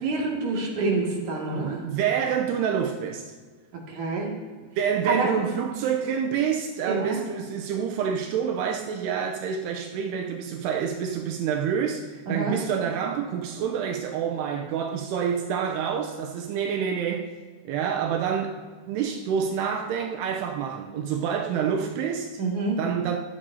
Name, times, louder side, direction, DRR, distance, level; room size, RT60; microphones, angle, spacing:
voice 1, 0.0-1.9 3.7-4.3 5.0-5.3 6.8-7.2 12.3-12.6 22.4-22.8, right 3 dB, 50° right, 3.0 m, -27 dB
voice 2, 1.5-3.3 4.8-17.3 17.7-22.4 22.8-23.2, right 7 dB, 85° right, 2.4 m, -27 dB
24.0 x 8.5 x 2.8 m
omnidirectional pair, 5.5 m